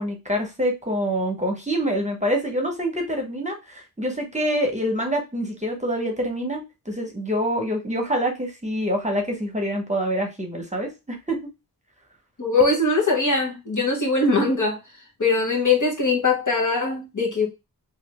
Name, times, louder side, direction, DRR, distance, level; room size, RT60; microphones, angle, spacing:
voice 1, 0.0-11.4, equal, 20° right, 1.0 m, -26 dB
voice 2, 12.4-14.8 15.2-17.5, left 3 dB, 50° left, 1.2 m, -21 dB
3.1 x 2.6 x 3.0 m
wide cardioid pair, 75°, 38 cm